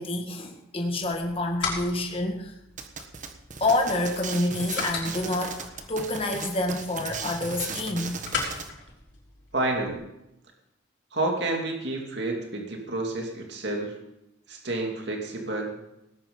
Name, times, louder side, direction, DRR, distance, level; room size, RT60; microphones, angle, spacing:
voice 1, 0.0-2.5 3.6-5.6 5.9-8.2, left 2 dB, 25° left, 2 dB, 1.8 m, -28 dB
sound 1, 1.0-9.9, left 4 dB, 60° left, 5.0 m, -38 dB
sound 2, 2.8-8.7, right 5 dB, 40° right, 1.4 m, -37 dB
voice 2, 9.5-10.1 11.1-13.9 14.5-15.8, right 2 dB, 55° right, 1 dB, 2.6 m, -29 dB
18.5 x 10.5 x 5.4 m, 0.88 s
head